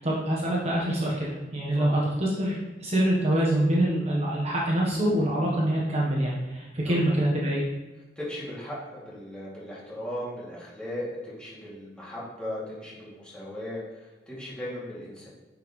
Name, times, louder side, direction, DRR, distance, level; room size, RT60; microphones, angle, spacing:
voice 1, 0.0-7.6, right 1 dB, 35° right, -4 dB, 1.1 m, -25 dB
voice 2, 8.2-15.3, left 1 dB, 5° left, -8 dB, 2.5 m, -37 dB
9.0 x 5.1 x 3.2 m, 1.2 s
head